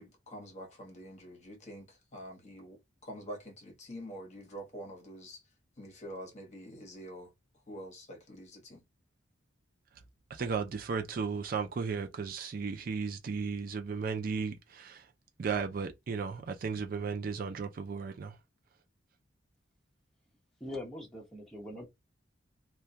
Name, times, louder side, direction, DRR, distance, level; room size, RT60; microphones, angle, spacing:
voice 1, 0.0-5.4 5.8-7.3 7.7-8.8, equal, 35° left, 0.9 m, -46 dB
voice 2, 10.3-15.1 15.4-18.4, right 5 dB, 45° right, 0.4 m, -35 dB
voice 3, 20.6-21.8, left 1 dB, ahead, 1.0 m, -42 dB
2.2 x 2.2 x 2.6 m
head